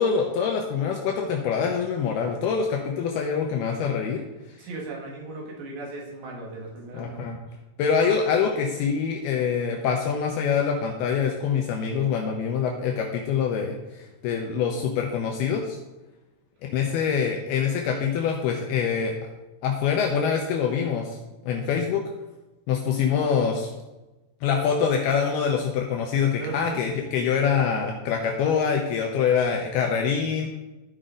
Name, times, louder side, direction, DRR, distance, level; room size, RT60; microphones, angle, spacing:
voice 1, 0.0-4.2 6.9-7.4 7.8-15.8 16.6-19.1 19.6-21.1 21.4-22.0 22.7-23.7 24.4-30.5, left 6 dB, 75° left, 1 dB, 2.5 m, -25 dB
voice 2, 4.6-7.3 26.4-26.8, right 2 dB, 80° right, -2 dB, 4.3 m, -37 dB
14.0 x 5.3 x 3.8 m, 1.1 s
omnidirectional pair, 5.0 m